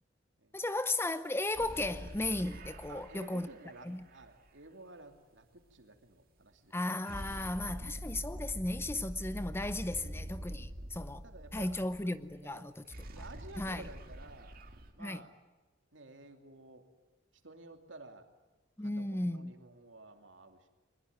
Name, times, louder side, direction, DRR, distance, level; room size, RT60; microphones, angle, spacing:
voice 1, 0.5-3.5 3.8-4.1 6.7-11.2 11.5-12.8 13.2-13.3 13.6-13.8 15.0-15.2 18.8-19.5, left 2 dB, 10° left, 0.7 m, -35 dB
sound 1, 1.6-4.5 7.1-12.4 12.7-14.9, equal, 50° right, 2.5 m, -45 dB
voice 2, 2.9-7.1 7.7-8.0 9.9-10.1 10.5-10.7 11.2-11.8 12.3-12.6 13.1-14.6 14.9-15.3 15.9-16.8 17.4-18.3 18.8-20.7, right 2 dB, 70° right, 2.8 m, -53 dB
23.0 x 21.0 x 9.5 m
head